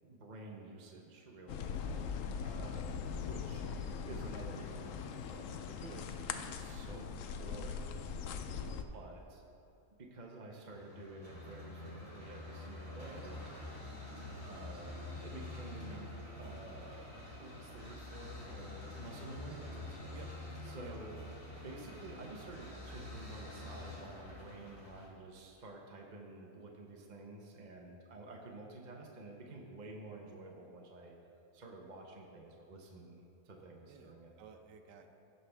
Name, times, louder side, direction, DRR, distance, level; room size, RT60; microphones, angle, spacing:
voice 1, 0.0-1.7 2.4-3.7 4.0-7.1 7.4-7.9 8.7-9.4 10.0-13.4 14.4-15.0 15.2-16.1 16.4-20.2 20.6-21.2 21.5-31.2 31.5-34.3, right 2 dB, 40° right, 0 dB, 0.7 m, -50 dB
sound 1, 1.5-8.8, left 6 dB, 70° left, 0.7 m, -41 dB
voice 2, 8.5-8.8 14.0-14.5 15.8-16.0 20.1-20.3 20.8-21.0 33.9-35.1, right 7 dB, 85° right, 5 dB, 1.3 m, -57 dB
sound 2, 10.7-25.1, left 2 dB, 35° left, 2.3 m, -47 dB
16.5 x 5.7 x 3.4 m, 2.7 s
omnidirectional pair, 1.8 m